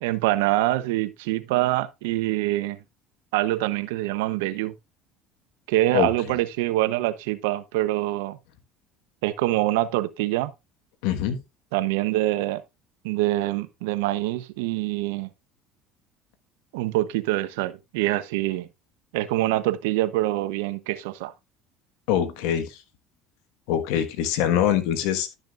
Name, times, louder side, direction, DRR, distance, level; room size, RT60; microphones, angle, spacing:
voice 1, 0.0-2.8 3.3-4.7 5.7-8.4 9.2-10.5 11.7-12.6 13.0-15.3 16.7-18.7 19.1-21.3, right 16 dB, 85° right, 0.7 m, -25 dB
voice 2, 11.0-11.4 22.1-22.8 23.7-25.3, left 10 dB, 80° left, 1.3 m, -23 dB
12.0 x 6.6 x 2.4 m
supercardioid pair, 95°, 0 cm